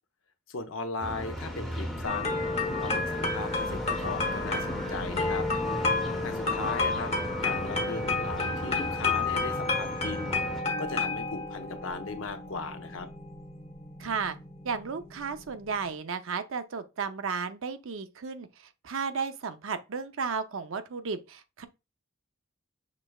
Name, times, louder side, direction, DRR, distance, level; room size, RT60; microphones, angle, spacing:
voice 1, 0.5-5.5 6.2-7.1 7.4-10.3 10.8-13.1, left 3 dB, 70° left, 0.7 m, -37 dB
sound 1, 1.0-10.6, equal, ahead, 0.7 m, -37 dB
sound 2, 2.0-15.9, left 3 dB, 30° left, 1.1 m, -31 dB
voice 2, 14.0-14.4 14.6-18.5 18.8-21.7, right 5 dB, 70° right, 0.5 m, -33 dB
6.0 x 3.2 x 2.3 m
head